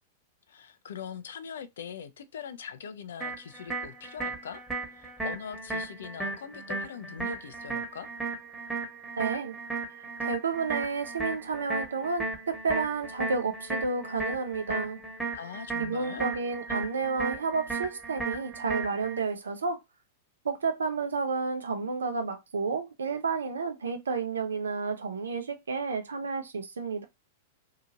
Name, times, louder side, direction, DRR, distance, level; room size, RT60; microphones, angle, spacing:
voice 1, 0.5-4.6 4.9-8.1 15.3-16.3, left 7 dB, 70° left, 0.4 m, -42 dB
sound 1, 3.2-19.2, right 3 dB, 5° right, 1.2 m, -36 dB
voice 2, 9.2-9.6 10.2-15.0 15.8-19.8 20.4-27.0, right 4 dB, 85° right, 0.6 m, -31 dB
2.8 x 2.4 x 2.7 m
hypercardioid pair, 105°, 0 cm